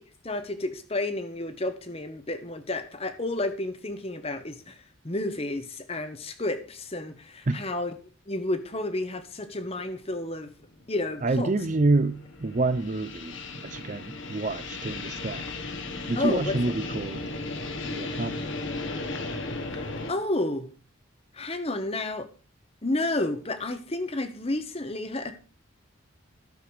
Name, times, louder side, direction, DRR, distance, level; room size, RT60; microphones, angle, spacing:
voice 1, 0.2-4.8 5.0-7.9 8.3-10.5 10.9-11.5 16.2-16.6 19.7-20.7 21.3-22.3 22.8-25.3, left 2 dB, 30° left, 1.0 m, -31 dB
sound 1, 10.4-20.1, left 3 dB, 65° left, 1.4 m, -36 dB
voice 2, 11.2-15.4 16.1-17.3 17.8-18.5, right 2 dB, 35° right, 0.5 m, -28 dB
13.0 x 6.9 x 4.8 m
head